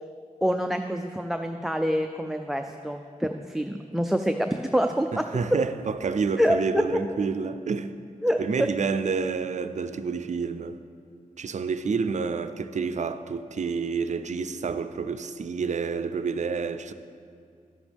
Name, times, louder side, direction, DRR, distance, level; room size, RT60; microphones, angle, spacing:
voice 1, 0.4-5.2 6.4-7.0 8.2-8.7, equal, ahead, 0.4 m, -26 dB
voice 2, 5.1-7.9 8.4-10.8 11.4-16.9, right 5 dB, 60° right, 0.5 m, -29 dB
12.0 x 8.0 x 3.5 m
cardioid pair, 60°, 14 cm